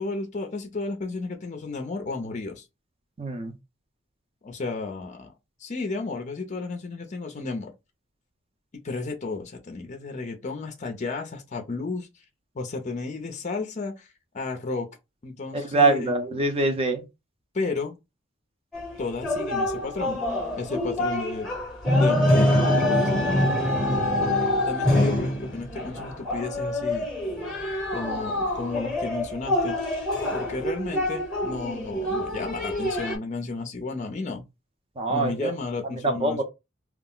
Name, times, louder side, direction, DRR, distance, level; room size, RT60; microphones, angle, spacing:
voice 1, 0.0-2.6 4.4-5.3 5.6-7.7 8.8-12.1 12.5-14.1 14.3-14.9 15.2-16.1 17.5-18.0 19.0-21.5 21.9-23.6 24.6-27.1 27.9-29.8 30.3-34.4 35.1-36.4, left 3 dB, 35° left, 0.5 m, -33 dB
voice 2, 3.2-3.5 15.5-17.0 35.0-35.5 36.0-36.4, right 2 dB, 30° right, 0.5 m, -24 dB
sound 1, 18.7-33.2, left 1 dB, 5° left, 0.9 m, -25 dB
2.4 x 2.0 x 3.7 m
head